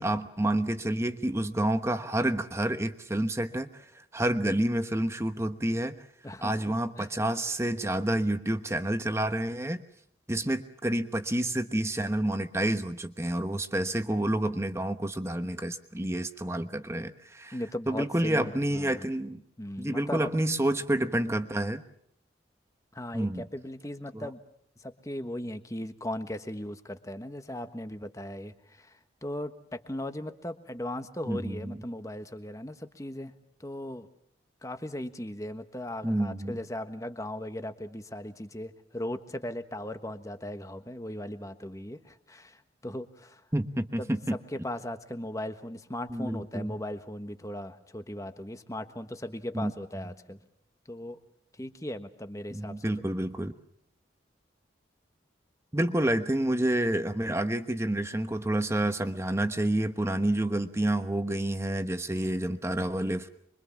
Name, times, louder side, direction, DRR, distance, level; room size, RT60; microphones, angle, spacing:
voice 1, 0.0-6.0 6.4-9.8 10.3-17.6 17.9-19.4 19.8-21.8 23.1-23.4 24.1-24.3 31.3-31.8 36.0-36.6 43.5-44.4 46.1-46.7 49.5-49.7 52.5-53.5 55.7-63.3, right 1 dB, 15° right, 9 dB, 1.1 m, -29 dB
voice 2, 6.2-7.1 17.5-19.1 19.6-20.3 22.9-24.4 24.8-33.3 33.6-34.1 34.6-43.4 44.0-50.4 50.9-51.2 51.6-52.8, left 1 dB, 15° left, 9 dB, 1.4 m, -38 dB
25.5 x 23.5 x 7.3 m, 0.67 s
head